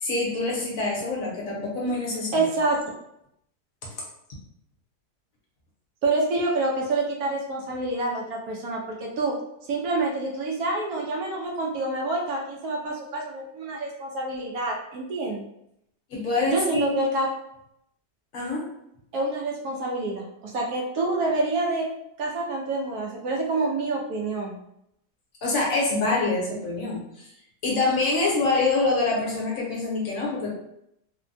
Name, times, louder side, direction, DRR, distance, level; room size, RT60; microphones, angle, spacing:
voice 1, 0.0-2.5 16.1-16.9 18.3-18.6 25.4-27.3 27.6-30.5, left 3 dB, 65° left, -3 dB, 1.1 m, -25 dB
voice 2, 2.3-2.8 6.0-9.4 9.7-15.4 16.5-17.3 19.1-21.9 22.2-24.6, right 2 dB, 70° right, -1 dB, 1.1 m, -27 dB
3.2 x 2.1 x 2.5 m, 0.78 s
omnidirectional pair, 1.7 m